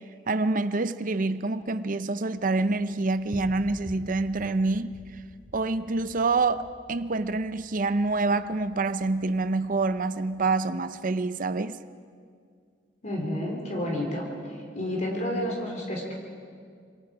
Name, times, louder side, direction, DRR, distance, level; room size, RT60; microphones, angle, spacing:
voice 1, 0.3-4.9 5.5-11.8, right 3 dB, 50° right, 0.6 m, -26 dB
sound 1, 2.3-10.7, equal, 30° right, 3.1 m, -49 dB
voice 2, 13.0-14.3 14.7-16.1, left 1 dB, 45° left, 3.4 m, -30 dB
27.0 x 23.5 x 4.9 m
head